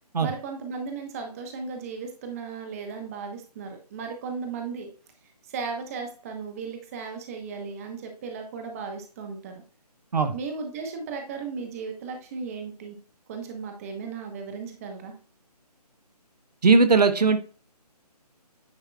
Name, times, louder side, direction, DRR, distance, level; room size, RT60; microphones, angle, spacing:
voice 1, 0.2-4.9 5.5-9.6 10.3-13.0 13.3-15.1, right 5 dB, 20° right, 4 dB, 0.9 m, -36 dB
voice 2, 16.6-17.4, right 4 dB, 75° right, 10 dB, 0.9 m, -18 dB
9.6 x 4.7 x 2.2 m, 0.40 s
figure-of-eight pair, 155°, 21 cm